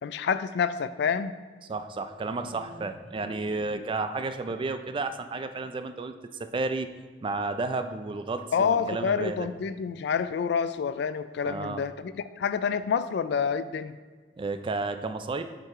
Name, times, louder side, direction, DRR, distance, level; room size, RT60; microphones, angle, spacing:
voice 1, 0.0-1.3 8.5-14.0, left 6 dB, 70° left, 13 dB, 0.3 m, -28 dB
voice 2, 1.7-6.1 6.4-6.9 7.2-9.5 11.5-11.8 14.4-15.4, right 3 dB, 30° right, 9 dB, 0.4 m, -32 dB
7.7 x 4.6 x 3.6 m, 1.5 s
head